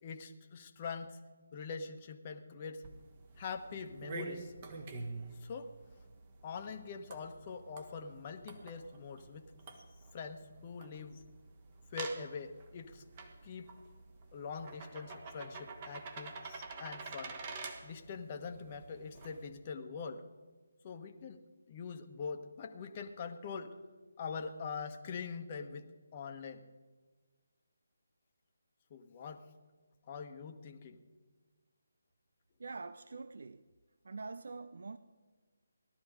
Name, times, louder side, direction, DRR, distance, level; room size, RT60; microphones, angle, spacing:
voice 1, 0.0-1.2 1.5-2.8 3.4-4.5 5.4-5.7 6.4-9.5 10.1-11.2 11.9-13.0 13.4-13.7 14.3-17.4 17.8-20.3 20.8-21.4 21.7-23.8 24.2-25.9 26.1-26.6 28.9-29.5 30.1-31.0, left 5 dB, 30° left, 6 dB, 1.2 m, -43 dB
sound 1, 2.8-19.5, right 3 dB, 30° right, 1.9 m, -48 dB
voice 2, 32.6-33.6 34.0-35.0, right 3 dB, 60° right, 13 dB, 0.6 m, -45 dB
18.0 x 12.5 x 5.0 m, 1.4 s
figure-of-eight pair, 150°, 0 cm